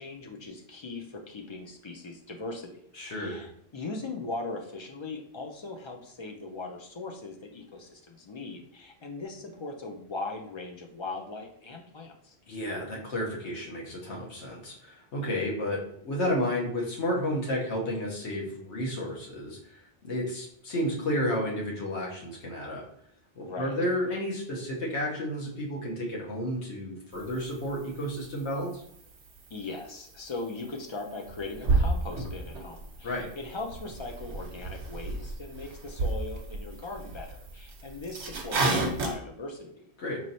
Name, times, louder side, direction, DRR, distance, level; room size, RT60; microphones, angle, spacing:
voice 1, 0.0-2.8 3.1-12.4 23.4-23.7 29.5-39.9, left 3 dB, 45° left, 2 dB, 0.3 m, -39 dB
voice 2, 3.0-3.5 12.5-22.8 23.4-28.8 33.0-33.3 40.0-40.2, left 1 dB, 90° left, -3 dB, 1.2 m, -32 dB
sound 1, 27.1-39.1, right 2 dB, 85° right, 1.1 m, -33 dB
4.3 x 3.1 x 2.6 m, 0.69 s
omnidirectional pair, 1.1 m